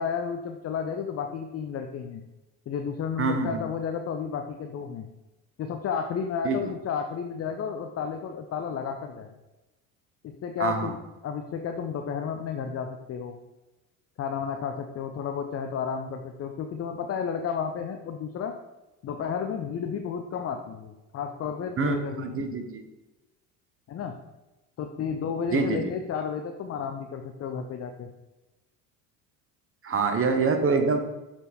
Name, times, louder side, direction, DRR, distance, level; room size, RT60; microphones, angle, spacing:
voice 1, 0.0-2.2 2.7-5.1 5.6-9.3 10.2-13.4 14.2-18.5 19.0-22.6 23.9-24.2 24.8-28.1, left 6 dB, 35° left, 5 dB, 0.7 m, -32 dB
voice 2, 3.2-3.6 6.4-6.6 10.6-10.9 21.8-22.8 25.5-25.9 29.8-31.0, right 4 dB, 35° right, 6 dB, 1.1 m, -25 dB
6.8 x 4.4 x 4.3 m, 1.0 s
supercardioid pair, 80°, 40 cm